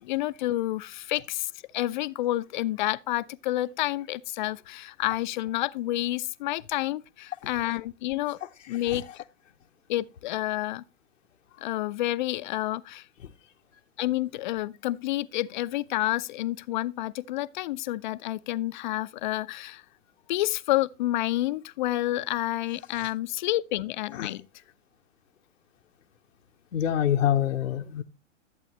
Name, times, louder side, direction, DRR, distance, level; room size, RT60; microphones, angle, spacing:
voice 1, 0.0-8.4 8.7-9.2 9.9-10.8 11.6-13.1 14.0-19.8 20.3-24.5, left 16 dB, 40° left, 0.4 m, -29 dB
voice 2, 8.7-9.0 24.1-24.3 26.7-28.0, left 10 dB, 80° left, 0.7 m, -26 dB
11.5 x 8.1 x 2.9 m
hypercardioid pair, 110°, 38 cm